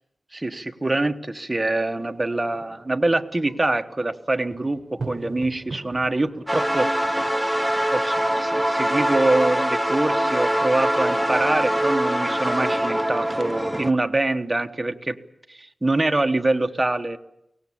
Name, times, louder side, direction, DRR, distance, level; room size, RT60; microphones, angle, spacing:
voice 1, 0.3-6.9 7.9-15.2 15.5-17.2, right 2 dB, 20° right, 6 dB, 1.3 m, -24 dB
sound 1, 1.9-7.1, right 3 dB, 55° right, 1.2 m, -41 dB
sound 2, 6.5-13.9, equal, ahead, 1.0 m, -23 dB
23.0 x 18.0 x 8.7 m, 0.79 s
wide cardioid pair, 85°, 0 cm